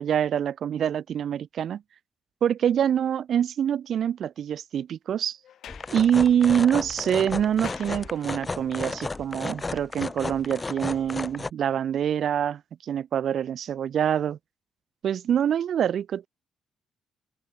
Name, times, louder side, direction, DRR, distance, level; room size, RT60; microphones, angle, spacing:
voice 1, 0.0-1.8 2.4-5.4 5.9-14.4 15.0-16.3, right 9 dB, 65° right, 0.7 m, -25 dB
Sliding door, 5.4-8.7, left 10 dB, 70° left, 4.9 m, -49 dB
sound 1, 5.7-11.5, left 3 dB, 25° left, 3.0 m, -34 dB
open air
cardioid pair, 90°, 0 cm